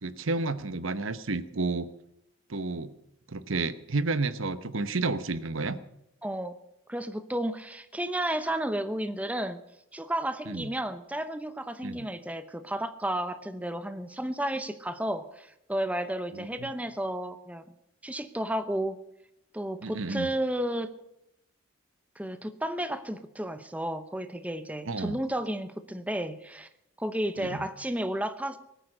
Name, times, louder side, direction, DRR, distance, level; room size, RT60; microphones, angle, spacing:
voice 1, 0.0-1.9 2.5-2.9 3.3-5.8 10.5-10.7 11.8-12.1 16.3-16.7 19.8-20.3 24.9-25.2 27.4-27.7, right 3 dB, 75° right, 13 dB, 1.0 m, -31 dB
voice 2, 6.2-6.6 6.9-9.6 9.9-17.6 18.0-19.0 19.5-20.9 22.2-26.7 27.0-28.6, right 1 dB, 5° right, 10 dB, 0.8 m, -32 dB
19.5 x 9.4 x 6.5 m, 0.82 s
head